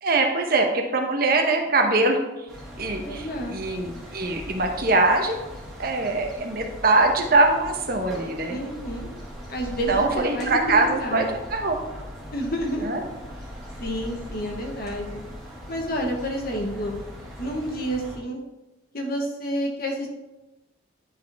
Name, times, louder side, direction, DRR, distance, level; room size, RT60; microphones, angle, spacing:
voice 1, 0.0-2.2 2.8-5.4 5.8-8.6 9.9-11.8 12.8-13.0, right 2 dB, 55° right, 3 dB, 1.0 m, -22 dB
sound 1, 2.5-18.2, equal, ahead, 2.0 m, -40 dB
voice 2, 3.0-3.5 8.5-9.1 9.5-11.3 12.3-12.9 13.8-15.2 15.7-16.9 17.4-18.4 18.9-20.1, equal, 55° left, 1 dB, 1.3 m, -29 dB
10.0 x 4.6 x 3.5 m, 1.0 s
head